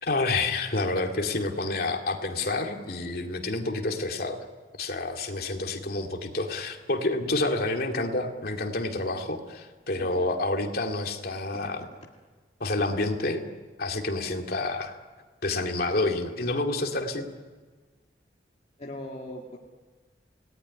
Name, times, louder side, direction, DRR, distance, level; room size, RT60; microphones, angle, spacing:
voice 1, 0.0-4.4 4.8-11.8 12.6-13.4 13.8-15.0 15.4-17.2, left 2 dB, 60° left, 3 dB, 2.6 m, -28 dB
voice 2, 9.9-10.3 18.8-19.6, left 1 dB, 40° left, -1 dB, 2.2 m, -39 dB
29.0 x 18.5 x 9.8 m, 1.4 s
head